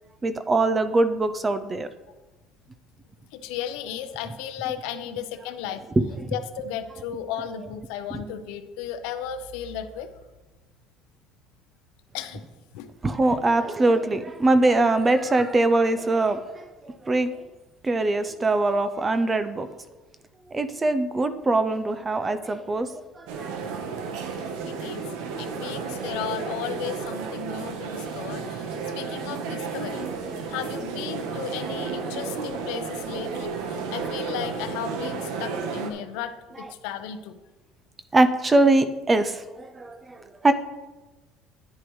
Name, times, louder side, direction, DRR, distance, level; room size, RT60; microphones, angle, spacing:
voice 1, 0.2-1.9 6.2-6.3 8.1-8.2 13.0-17.3 17.8-19.7 20.5-23.8 32.0-32.2 38.1-40.5, right 2 dB, 15° right, 11 dB, 0.4 m, -23 dB
voice 2, 3.3-5.8 6.3-10.1 12.1-12.5 12.7-12.9 24.6-25.1 25.4-30.1 30.5-37.4, left 9 dB, 85° left, 9 dB, 0.6 m, -35 dB
sound 1, 23.3-35.9, right 5 dB, 85° right, 1.0 m, -32 dB
9.9 x 8.0 x 3.1 m, 1.2 s
cardioid pair, 180°, 0 cm